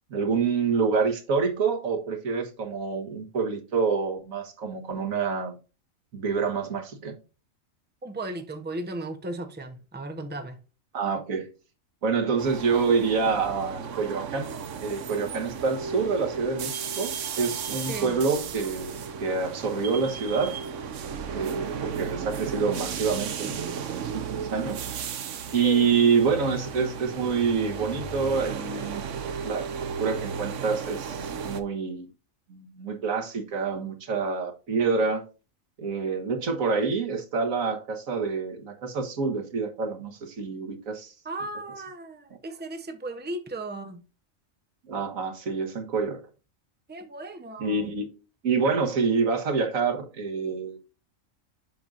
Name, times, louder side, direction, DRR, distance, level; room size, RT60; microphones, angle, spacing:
voice 1, 0.1-5.5 6.1-7.2 10.9-11.5 12.0-14.5 14.8-18.9 19.2-20.6 21.3-24.8 25.5-29.0 29.4-29.7 30.0-32.1 32.5-35.2 35.8-41.1 44.9-46.2 47.6-48.1 48.4-50.8, right 5 dB, 90° right, 1.7 m, -27 dB
voice 2, 8.0-10.6 17.8-18.2 25.5-25.9 41.2-44.0 46.9-47.9, right 2 dB, 10° right, 0.7 m, -36 dB
sound 1, 12.4-31.6, right 6 dB, 70° right, 1.1 m, -34 dB
7.6 x 6.0 x 2.5 m
omnidirectional pair, 1.4 m